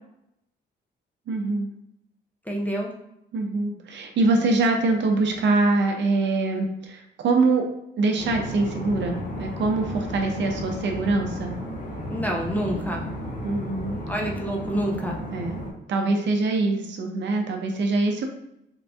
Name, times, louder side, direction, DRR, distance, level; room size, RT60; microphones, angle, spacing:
voice 1, 1.3-1.7 3.3-7.6 8.0-11.5 13.4-14.0 15.3-18.2, right 3 dB, 70° right, 2 dB, 0.7 m, -24 dB
voice 2, 2.5-2.9 12.1-13.0 14.1-15.2, right 1 dB, 10° left, 0 dB, 0.8 m, -27 dB
sound 1, 8.2-15.7, equal, 40° left, 1.1 m, -34 dB
3.8 x 2.6 x 3.4 m, 0.82 s
cardioid pair, 90°, 19 cm